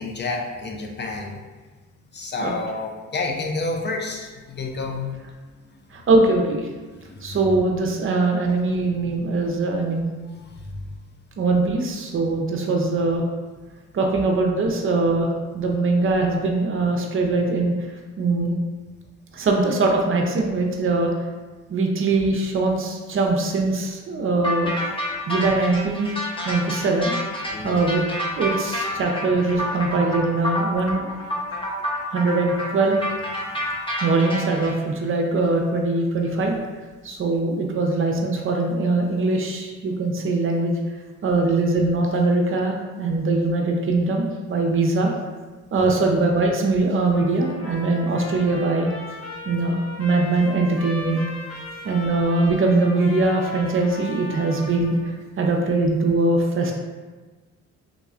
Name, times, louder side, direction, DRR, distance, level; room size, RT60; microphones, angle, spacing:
voice 1, 0.0-1.4 2.1-5.3 5.7-5.8 6.9-7.6 10.2-11.0 27.5-27.8 45.8-46.0, left 3 dB, 35° left, 1 dB, 0.4 m, -30 dB
voice 2, 5.9-6.7 7.2-10.1 11.4-13.3 13.9-17.8 18.2-18.6 19.3-21.1 21.7-24.7 25.3-26.1 26.4-27.2 27.6-28.0 28.4-31.1 32.1-33.0 34.0-36.5 37.0-40.8 41.2-45.1 45.7-48.9 49.5-51.2 51.8-55.0 55.4-56.7, right 3 dB, 45° right, 1 dB, 0.6 m, -22 dB
sound 1, 24.4-34.7, equal, 15° left, 0.8 m, -28 dB
Trumpet, 47.1-55.1, left 2 dB, 60° left, 0.9 m, -38 dB
3.5 x 3.0 x 2.4 m, 1.3 s
cardioid pair, 90°, 30 cm